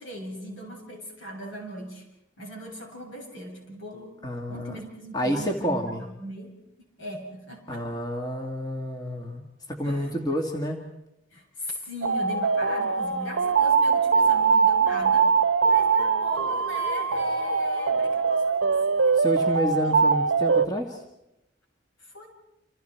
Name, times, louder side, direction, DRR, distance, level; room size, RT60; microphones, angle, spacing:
voice 1, 0.0-2.1 2.4-4.1 4.5-6.5 7.0-7.9 9.8-10.4 11.3-15.3 15.7-19.2 19.8-20.1 22.0-22.3, equal, 80° left, 1 dB, 7.6 m, -39 dB
voice 2, 4.2-4.8 5.1-6.0 7.7-9.4 9.7-10.9 19.2-21.0, equal, 20° left, 2 dB, 2.1 m, -29 dB
sound 1, 12.0-20.7, right 5 dB, 75° right, 0.8 m, -22 dB
28.5 x 28.0 x 4.7 m, 0.88 s
head